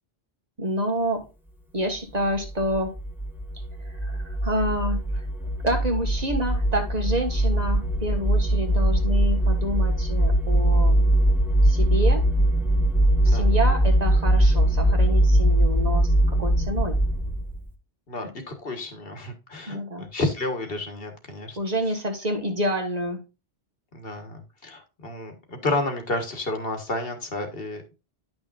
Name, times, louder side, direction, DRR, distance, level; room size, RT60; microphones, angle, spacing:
voice 1, 0.6-1.2 1.7-2.9 4.0-5.2 5.6-11.0 11.6-12.2 13.2-16.1 16.4-17.0 19.7-20.1 21.6-23.2, right 1 dB, 40° right, 3 dB, 1.6 m, -28 dB
sound 1, 2.3-17.6, right 1 dB, ahead, 1.3 m, -21 dB
voice 2, 18.1-21.6 23.9-27.8, left 2 dB, 60° left, 6 dB, 1.6 m, -31 dB
10.5 x 6.1 x 2.4 m, 0.29 s
omnidirectional pair, 1.1 m